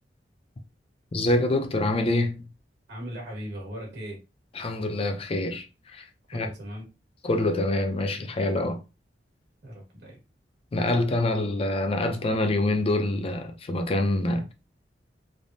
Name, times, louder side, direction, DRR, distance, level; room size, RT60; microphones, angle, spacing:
voice 1, 1.1-2.5 4.5-5.7 5.9-6.0 6.3-6.5 7.2-8.8 10.7-14.5, left 2 dB, 35° left, 0.4 m, -25 dB
voice 2, 2.9-4.2 6.3-6.8 9.6-10.2, equal, 70° right, 1.4 m, -38 dB
3.3 x 2.0 x 2.6 m
head